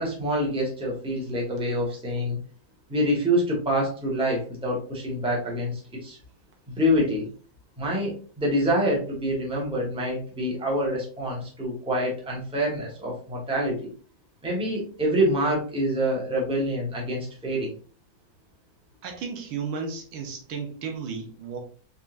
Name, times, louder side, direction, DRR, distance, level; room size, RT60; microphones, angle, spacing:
voice 1, 0.0-2.4 2.9-6.2 6.7-7.3 7.8-13.9 14.4-17.7, equal, 5° right, -3 dB, 0.9 m, -26 dB
voice 2, 19.0-21.6, right 5 dB, 80° right, 3 dB, 1.7 m, -34 dB
4.2 x 3.5 x 2.5 m, 0.40 s
omnidirectional pair, 2.2 m